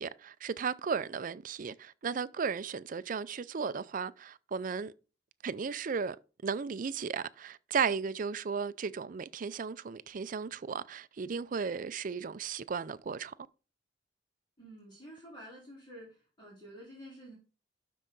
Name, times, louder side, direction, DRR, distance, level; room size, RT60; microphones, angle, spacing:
voice 1, 0.0-4.9 5.4-6.2 6.4-13.3, right 6 dB, 45° right, 0.4 m, -35 dB
voice 2, 14.6-17.3, equal, 25° left, 3.9 m, -50 dB
12.0 x 4.6 x 3.9 m
head